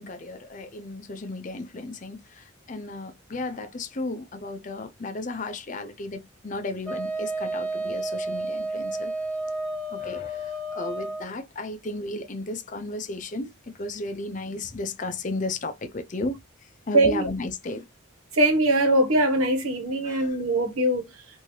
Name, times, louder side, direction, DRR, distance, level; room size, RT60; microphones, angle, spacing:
voice 1, 0.0-9.1 9.9-13.5 13.8-16.4 16.9-17.9 20.0-20.3, left 2 dB, 35° left, 0.5 m, -34 dB
Wind instrument woodwind instrument, 6.8-11.3, right 2 dB, 5° left, 0.8 m, -31 dB
voice 2, 16.9-17.3 18.3-21.0, right 1 dB, 90° right, 1.2 m, -21 dB
3.2 x 2.7 x 2.7 m
head